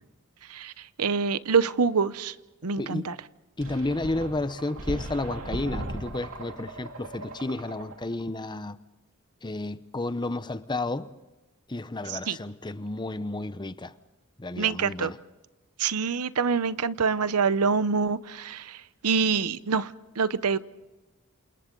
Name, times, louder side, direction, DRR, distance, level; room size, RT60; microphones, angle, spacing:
voice 1, 0.5-2.3 2.6-3.2 12.1-12.4 14.6-15.1 15.8-20.6, right 5 dB, 90° right, 0.8 m, -26 dB
voice 2, 3.6-8.8 9.4-11.1 11.7-13.9 14.4-15.1, left 2 dB, 20° left, 0.8 m, -31 dB
sound 1, 3.6-8.2, right 1 dB, 65° right, 2.7 m, -38 dB
28.5 x 27.5 x 3.9 m
head